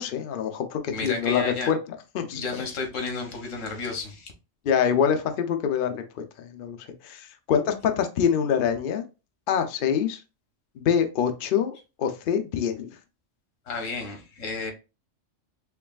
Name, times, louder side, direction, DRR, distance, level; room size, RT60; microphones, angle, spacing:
voice 1, 0.0-1.8 2.1-2.4 4.7-6.0 6.4-6.8 7.0-9.0 9.5-10.2 10.8-12.9, left 8 dB, 55° left, 6 dB, 0.6 m, -25 dB
voice 2, 0.9-1.7 2.3-4.3 13.7-14.7, left 4 dB, 85° left, 4 dB, 1.4 m, -32 dB
4.6 x 3.1 x 2.3 m, 0.30 s
omnidirectional pair, 1.3 m